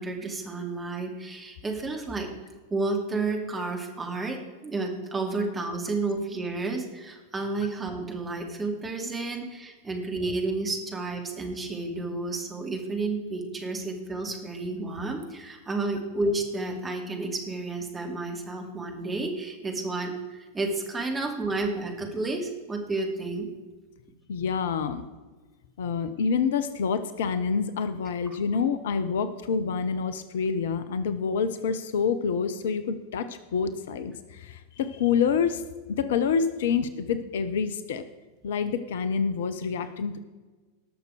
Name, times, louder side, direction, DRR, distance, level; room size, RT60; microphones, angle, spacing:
voice 1, 0.0-2.3 2.7-23.5, right 3 dB, 15° right, 2 dB, 2.4 m, -31 dB
voice 2, 24.3-25.0 25.8-35.6 35.9-38.0 38.4-40.2, left 6 dB, 60° left, 12 dB, 0.8 m, -27 dB
19.0 x 6.6 x 4.9 m, 1.3 s
figure-of-eight pair, 90°, 0 cm